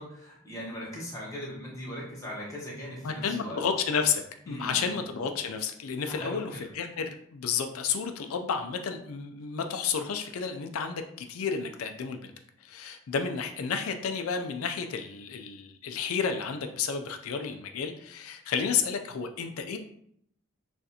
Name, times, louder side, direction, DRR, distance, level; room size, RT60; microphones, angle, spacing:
voice 1, 0.0-3.6 4.5-5.2 6.1-6.7, equal, 15° left, -5 dB, 1.1 m, -39 dB
voice 2, 3.0-11.0 11.3-12.3 12.6-19.8, left 6 dB, 90° left, 6 dB, 0.4 m, -31 dB
6.3 x 2.5 x 2.8 m, 0.71 s
head